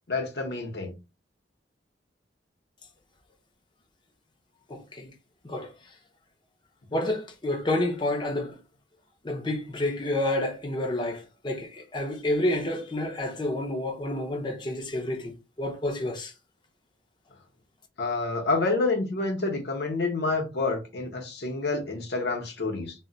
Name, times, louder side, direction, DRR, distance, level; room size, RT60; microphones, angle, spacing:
voice 1, 0.1-0.9 6.9-7.0 18.0-22.9, left 3 dB, 60° left, 0.7 m, -28 dB
voice 2, 4.7-5.1 5.4-5.7 6.9-8.6 9.2-16.3, left 1 dB, 25° left, 0.5 m, -29 dB
2.2 x 2.1 x 3.8 m
head